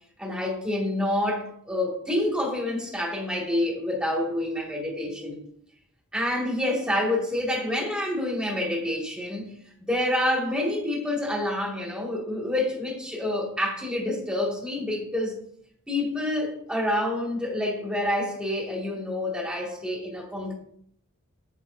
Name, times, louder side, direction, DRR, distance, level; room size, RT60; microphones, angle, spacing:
voice 1, 0.2-5.4 6.1-9.4 9.9-15.4 15.9-20.5, left 1 dB, 5° right, 2.1 m, -27 dB
9.1 x 8.1 x 2.7 m
head